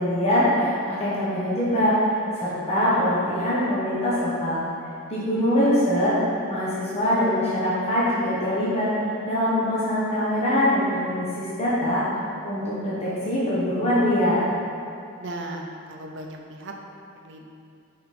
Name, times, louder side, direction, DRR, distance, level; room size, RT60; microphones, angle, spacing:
voice 1, 0.0-1.9 2.4-4.6 5.1-6.2 6.5-12.0 12.4-14.4, left 1 dB, 30° left, -9 dB, 1.3 m, -23 dB
voice 2, 15.2-16.7 17.1-17.5, right 1 dB, 55° right, 1 dB, 0.7 m, -37 dB
5.8 x 5.2 x 4.3 m, 2.5 s
head